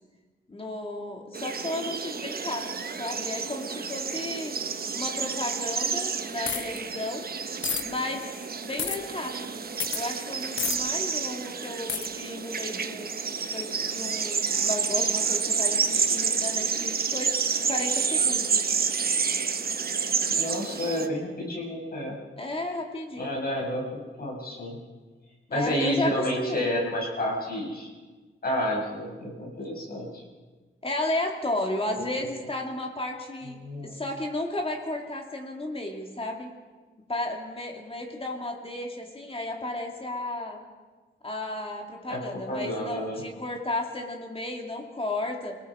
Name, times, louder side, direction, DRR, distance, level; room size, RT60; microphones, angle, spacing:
voice 1, 0.5-4.6 4.9-7.2 7.8-9.7 9.9-13.1 13.5-18.7 22.4-23.3 25.5-26.7 30.8-36.5 37.1-40.6 41.2-45.6, left 1 dB, 25° left, 2 dB, 2.4 m, -33 dB
sound 1, 1.3-21.1, right 5 dB, 50° right, 1.1 m, -29 dB
sound 2, 6.5-6.8 7.6-7.8 8.8-9.0 9.8-10.0 10.6-10.8 11.9-12.1, left 6 dB, 70° left, 1.4 m, -29 dB
voice 2, 20.3-22.2 23.2-24.8 25.5-27.9 28.4-30.1 31.9-32.3 33.6-33.9 42.1-43.2, equal, 50° left, -2 dB, 6.5 m, -30 dB
28.5 x 18.5 x 4.9 m, 1.3 s
wide cardioid pair, 140°, 20 cm